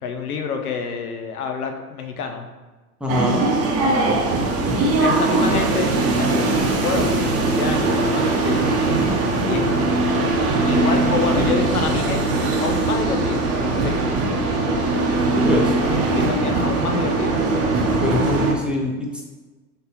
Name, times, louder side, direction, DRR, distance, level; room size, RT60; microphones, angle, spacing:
voice 1, 0.0-2.5 3.9-4.3 5.0-9.0 9.4-9.7 10.6-12.2 12.6-14.2 16.1-17.4, left 5 dB, 90° left, 4 dB, 0.6 m, -28 dB
voice 2, 3.0-3.5 15.3-15.7 18.0-19.2, left 1 dB, ahead, -2 dB, 0.6 m, -23 dB
sound 1, 3.1-18.5, right 3 dB, 35° right, 0.7 m, -20 dB
sound 2, 9.7-16.6, left 6 dB, 40° left, 1.3 m, -35 dB
3.9 x 3.7 x 2.8 m, 1.2 s
hypercardioid pair, 80°, 43 cm